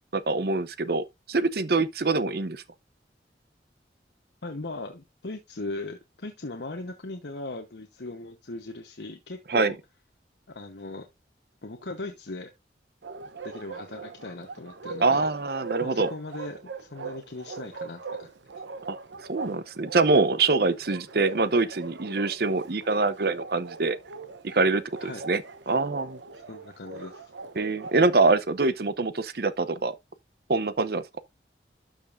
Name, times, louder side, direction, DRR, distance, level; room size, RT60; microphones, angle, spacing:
voice 1, 0.1-2.6 9.5-9.7 15.0-16.1 18.9-19.0 19.3-24.0 24.4-26.2 27.6-29.9 30.5-31.0, right 3 dB, 55° right, 0.7 m, -24 dB
voice 2, 4.4-9.8 10.5-11.1 11.6-12.5 13.4-15.3 15.8-18.3 25.0-25.2 26.3-27.3, left 2 dB, 75° left, 1.0 m, -38 dB
Bark, 13.0-28.4, right 4 dB, 90° right, 0.8 m, -41 dB
12.5 x 5.2 x 2.5 m
head